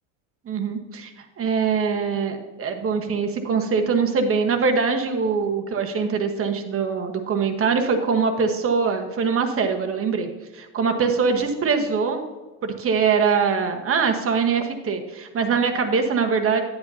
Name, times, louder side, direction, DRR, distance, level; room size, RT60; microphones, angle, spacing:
voice 1, 0.4-1.1 1.4-12.2 12.6-16.6, right 5 dB, 35° right, 5 dB, 1.3 m, -23 dB
10.0 x 9.3 x 2.8 m, 1.2 s
supercardioid pair, 105°, 41 cm